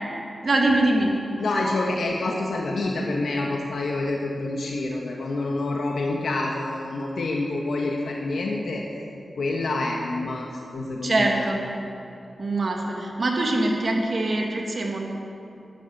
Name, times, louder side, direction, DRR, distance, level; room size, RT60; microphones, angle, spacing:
voice 1, 0.4-1.1 11.0-11.6 12.4-15.0, right 2 dB, 45° right, 0 dB, 1.9 m, -23 dB
voice 2, 1.4-8.8 9.4-11.5, left 2 dB, 90° left, 0 dB, 1.3 m, -27 dB
12.0 x 11.5 x 7.2 m, 2.8 s
wide cardioid pair, 150°, 0 cm